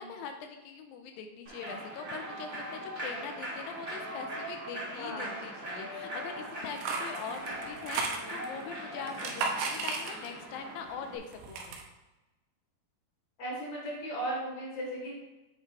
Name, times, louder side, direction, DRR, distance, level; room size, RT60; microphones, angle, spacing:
voice 1, 0.0-11.8, left 6 dB, 80° left, 6 dB, 2.3 m, -42 dB
Human voice / Clapping / Cheering, 1.4-11.2, right 1 dB, 65° right, 0.6 m, -40 dB
voice 2, 5.0-5.4 13.4-15.2, right 1 dB, 60° left, -2 dB, 2.0 m, -36 dB
sound 1, 6.5-8.6 9.0-10.5 10.9-11.8, right 4 dB, 90° right, 2.8 m, -35 dB
8.3 x 3.2 x 4.6 m, 1.1 s
omnidirectional pair, 4.4 m